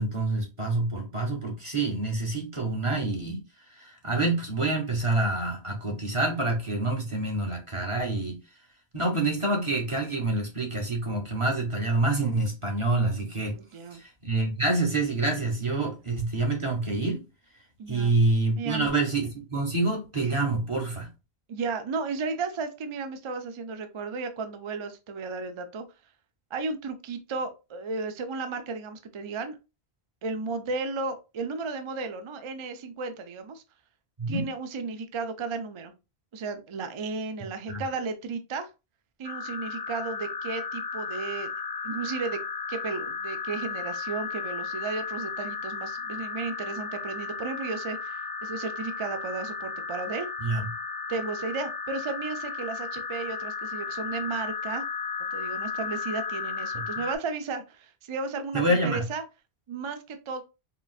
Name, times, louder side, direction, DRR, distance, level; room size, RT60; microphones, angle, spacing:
voice 1, 0.0-3.4 3.7-8.4 8.9-13.5 13.9-17.2 17.9-21.1 34.2-34.5 37.7-37.8 50.4-50.7 58.5-59.0, right 2 dB, 35° right, 0.8 m, -27 dB
voice 2, 13.6-14.0 17.8-18.2 18.6-18.9 21.5-25.8 26.5-29.6 30.2-33.6 34.3-35.9 36.3-38.7 39.2-41.5 41.8-42.4 42.7-50.3 51.1-54.8 55.3-59.2 59.7-60.4, right 4 dB, 55° right, 0.3 m, -34 dB
sound 1, 39.2-57.2, left 5 dB, 40° left, 0.3 m, -34 dB
3.8 x 2.4 x 2.3 m
omnidirectional pair, 1.0 m